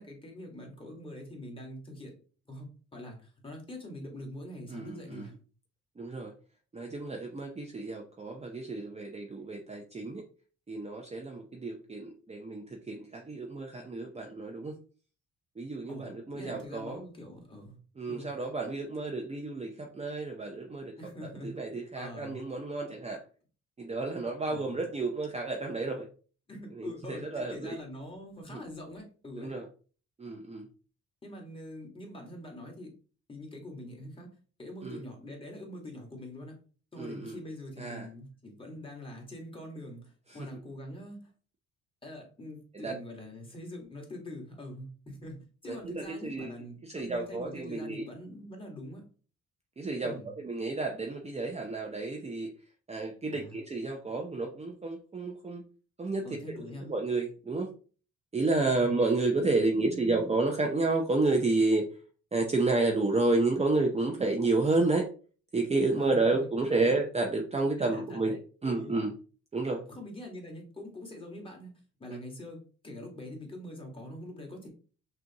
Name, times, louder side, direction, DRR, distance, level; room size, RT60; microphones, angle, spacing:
voice 1, 0.0-2.2 2.5-5.4 15.9-17.8 18.1-18.3 21.0-22.4 24.5-24.8 26.5-29.5 31.2-32.9 33.3-34.3 34.6-36.6 36.9-41.3 42.0-45.4 45.6-49.1 50.0-50.3 53.3-53.6 56.2-56.9 58.8-59.0 59.6-60.3 65.9-66.9 67.8-69.0 69.9-71.7 72.0-74.7, left 1 dB, 15° left, 1 dB, 1.8 m, -44 dB
voice 2, 4.7-5.3 6.0-6.3 6.7-10.2 10.7-14.8 15.6-17.0 18.0-20.9 21.2-23.2 23.8-26.1 26.7-27.8 28.5-28.6 29.4-29.7 30.2-30.7 34.8-35.0 37.0-37.4 37.8-38.1 40.3-40.5 42.7-42.9 45.7-46.5 46.8-48.1 49.8-52.5 52.9-55.6 56.0-56.4 56.8-57.7 58.3-61.8 62.3-65.1 65.5-68.3 68.6-69.1 69.5-69.8 72.1-72.2, right 3 dB, 20° right, 1 dB, 0.7 m, -30 dB
6.2 x 2.4 x 2.9 m, 0.39 s
cardioid pair, 90°, 30 cm